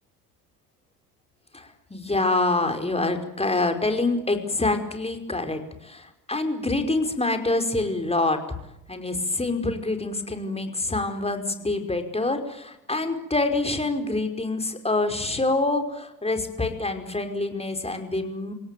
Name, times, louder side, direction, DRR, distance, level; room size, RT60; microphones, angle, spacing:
voice 1, 1.5-8.4 8.9-18.5, left 2 dB, 15° left, 6 dB, 5.2 m, -26 dB
29.0 x 18.0 x 9.4 m, 0.83 s
hypercardioid pair, 65°, 47 cm